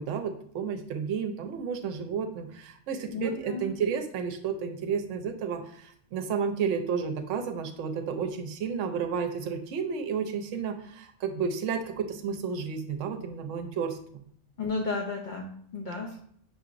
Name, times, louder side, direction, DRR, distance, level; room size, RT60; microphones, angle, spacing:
voice 1, 0.0-14.2, right 6 dB, 80° right, 5 dB, 0.9 m, -32 dB
voice 2, 3.1-3.7 14.6-16.2, left 3 dB, 55° left, 1 dB, 0.5 m, -33 dB
5.7 x 2.8 x 2.5 m, 0.63 s
omnidirectional pair, 1.3 m